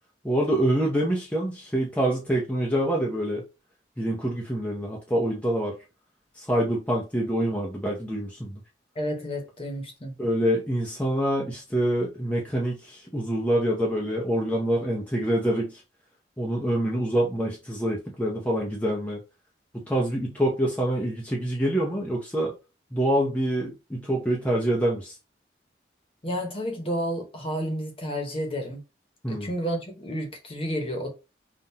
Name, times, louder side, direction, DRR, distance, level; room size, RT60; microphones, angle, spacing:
voice 1, 0.2-3.4 4.0-5.7 6.4-8.6 10.2-15.8 16.4-19.2 19.7-22.5 22.9-25.2 29.2-29.5, right 1 dB, 10° left, 0.7 m, -26 dB
voice 2, 8.9-10.2 26.2-28.8 29.3-31.1, equal, 30° left, 1.1 m, -31 dB
5.5 x 2.5 x 2.8 m
head